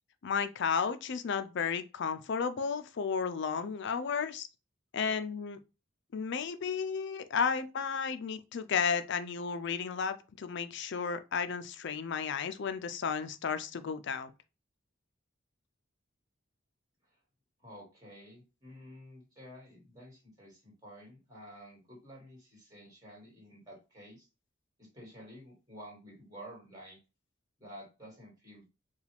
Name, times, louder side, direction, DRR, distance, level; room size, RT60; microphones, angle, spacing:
voice 1, 0.2-4.5 4.9-5.6 6.1-14.3, left 6 dB, 60° left, 0.5 m, -33 dB
voice 2, 17.6-24.3 24.8-27.0 27.6-28.7, equal, 20° right, 2.3 m, -51 dB
4.8 x 2.4 x 3.4 m
head